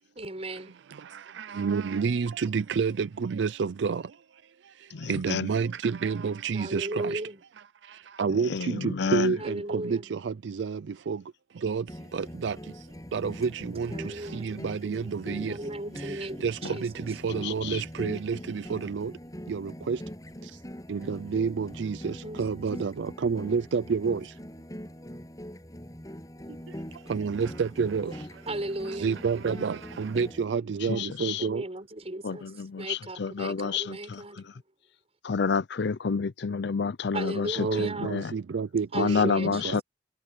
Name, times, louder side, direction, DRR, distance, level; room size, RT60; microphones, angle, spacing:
voice 1, 0.2-0.8 6.5-7.4 9.3-10.2 13.8-14.6 14.8-14.9 15.4-17.2 22.2-22.4 28.5-29.2 31.4-34.4 37.1-38.2 38.9-39.8, right 1 dB, 35° right, 6.1 m, -36 dB
voice 2, 0.9-7.2 7.8-15.6 16.0-19.2 19.5-20.0 20.4-20.6 20.9-24.4 26.5-28.4 28.9-31.6 37.6-39.8, right 5 dB, 70° right, 0.4 m, -30 dB
voice 3, 4.9-5.5 8.5-9.3 16.6-16.7 17.4-17.8 30.9-31.5 32.2-34.2 35.2-38.3 38.9-39.8, left 5 dB, 65° left, 0.5 m, -29 dB
sound 1, 11.9-30.5, equal, 20° left, 8.0 m, -42 dB
head